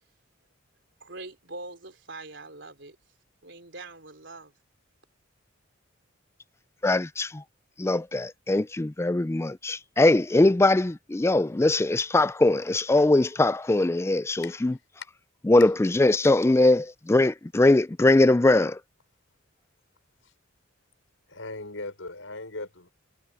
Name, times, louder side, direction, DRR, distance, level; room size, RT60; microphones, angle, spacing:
voice 1, 1.0-3.0 3.4-4.5, right 2 dB, 65° right, 4.0 m, -43 dB
voice 2, 6.8-7.4 7.8-14.7 15.5-18.8, left 2 dB, 15° left, 0.3 m, -21 dB
voice 3, 21.3-22.9, left 3 dB, 80° left, 5.6 m, -38 dB
head